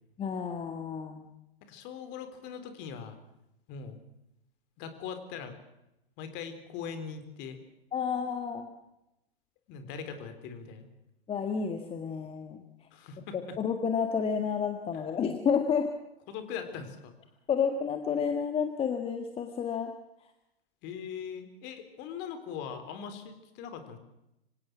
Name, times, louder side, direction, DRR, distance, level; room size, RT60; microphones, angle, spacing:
voice 1, 0.2-1.2 7.9-8.7 11.3-12.6 13.3-15.9 17.5-19.9, left 6 dB, 20° left, 6 dB, 1.7 m, -30 dB
voice 2, 1.6-3.2 3.7-4.0 4.8-5.6 6.2-7.6 9.7-10.9 12.9-13.4 15.0-15.1 16.3-17.1 20.8-24.0, left 7 dB, 35° left, 9 dB, 3.8 m, -41 dB
25.5 x 17.0 x 6.2 m, 0.87 s
hypercardioid pair, 115°, 31 cm